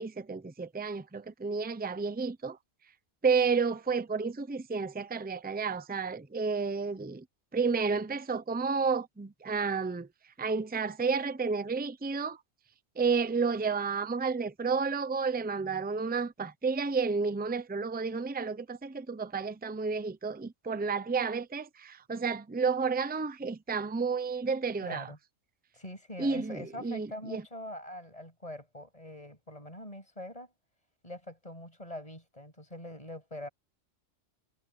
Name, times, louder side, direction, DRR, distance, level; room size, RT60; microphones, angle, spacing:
voice 1, 0.0-2.6 3.2-7.2 7.5-10.1 10.4-12.4 13.0-25.1 26.2-27.4, right 5 dB, 10° right, 0.6 m, -31 dB
voice 2, 24.8-25.2 25.7-30.5 31.0-33.5, left 1 dB, 25° left, 8.1 m, -43 dB
omnidirectional pair, 1.4 m